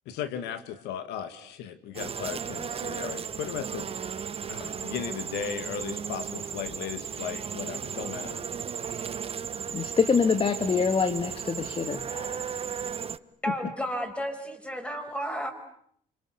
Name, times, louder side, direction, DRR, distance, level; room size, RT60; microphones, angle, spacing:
voice 1, 0.1-3.9 4.5-8.4, left 9 dB, 90° left, 10 dB, 2.3 m, -36 dB
sound 1, 1.9-13.2, right 7 dB, 35° right, 1.1 m, -35 dB
voice 2, 9.7-12.6, left 5 dB, 30° left, 10 dB, 1.7 m, -26 dB
voice 3, 13.4-15.5, equal, 5° left, 6 dB, 5.4 m, -32 dB
27.5 x 25.5 x 8.3 m, 0.68 s
cardioid pair, 110°, 17 cm